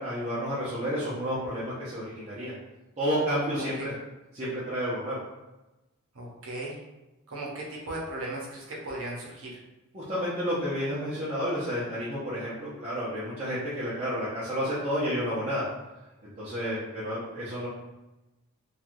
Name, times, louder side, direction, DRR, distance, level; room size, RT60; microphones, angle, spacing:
voice 1, 0.0-2.5 3.0-3.9 4.3-5.2 9.9-15.7 16.2-17.7, equal, 30° right, -10 dB, 0.6 m, -31 dB
voice 2, 3.5-3.9 6.1-6.8 7.3-9.6, right 1 dB, 70° right, -3 dB, 0.8 m, -37 dB
3.1 x 2.3 x 2.5 m, 1.0 s
head